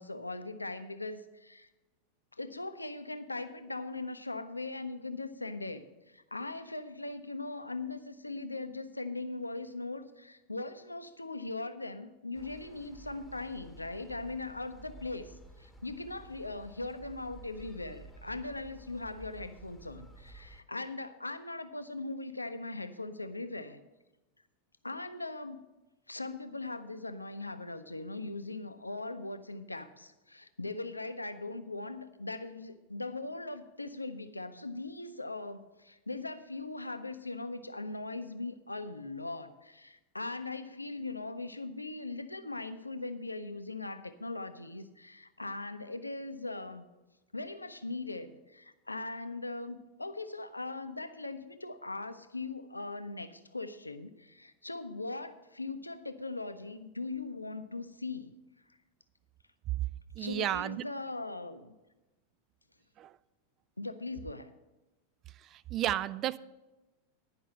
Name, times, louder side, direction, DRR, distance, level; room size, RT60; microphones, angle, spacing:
voice 1, 0.0-1.7 2.4-23.8 24.8-25.6 26.1-46.9 47.3-58.3 60.2-61.8 63.8-64.5, left 2 dB, 85° left, 0.6 m, -40 dB
sound 1, 12.3-20.6, right 2 dB, ahead, 1.3 m, -53 dB
voice 2, 60.2-60.8 63.0-63.1 65.4-66.4, right 12 dB, 35° right, 0.3 m, -33 dB
10.5 x 5.5 x 7.7 m
figure-of-eight pair, 90°, 0 cm